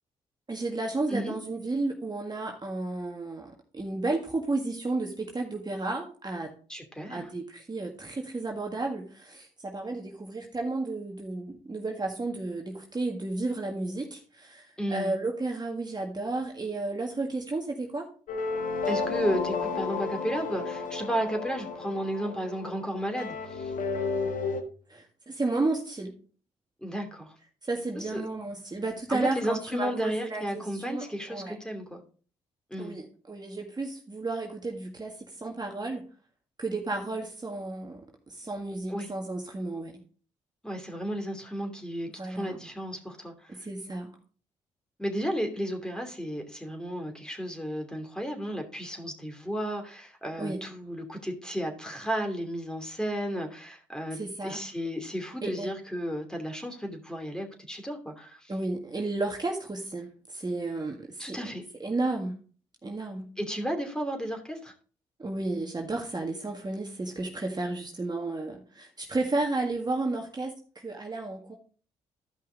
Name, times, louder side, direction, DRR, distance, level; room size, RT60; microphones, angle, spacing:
voice 1, 0.5-6.5 7.1-18.1 24.9-26.1 27.7-31.6 32.8-36.0 36.6-38.0 38.3-39.9 42.2-42.6 43.5-44.1 50.4-50.6 54.1-54.6 55.4-55.7 58.5-61.4 61.8-62.3 62.8-63.3 65.2-71.6, right 2 dB, 30° right, 1 dB, 1.7 m, -32 dB
voice 2, 6.7-7.3 14.8-15.2 18.9-23.7 26.8-27.3 27.9-28.2 29.1-32.0 32.7-33.0 38.9-39.1 40.6-43.6 45.0-58.5 61.2-61.6 63.4-64.7, equal, 5° left, 3 dB, 2.7 m, -33 dB
sound 1, 18.3-24.6, left 4 dB, 65° left, 1.3 m, -32 dB
12.5 x 5.6 x 3.9 m, 0.40 s
hypercardioid pair, 45°, 14 cm